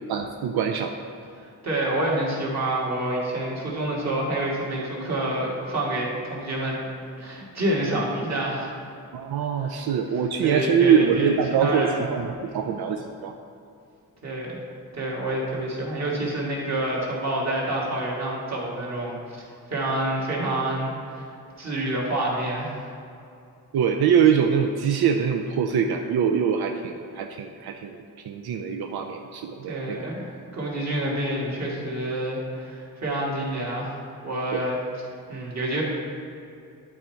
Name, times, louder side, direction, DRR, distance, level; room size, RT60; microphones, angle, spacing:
voice 1, 0.1-0.9 9.1-13.3 23.7-28.0 28.2-30.0 34.5-34.6, right 7 dB, 85° right, 4 dB, 0.5 m, -23 dB
voice 2, 1.4-6.9 7.2-8.7 10.4-12.0 12.4-12.7 14.2-14.6 14.9-19.4 19.7-21.3 21.6-22.9 29.7-34.0 34.2-34.8 35.3-35.8, right 1 dB, 45° right, -4 dB, 1.8 m, -28 dB
11.0 x 4.3 x 4.5 m, 2.5 s
wide cardioid pair, 160°, 37 cm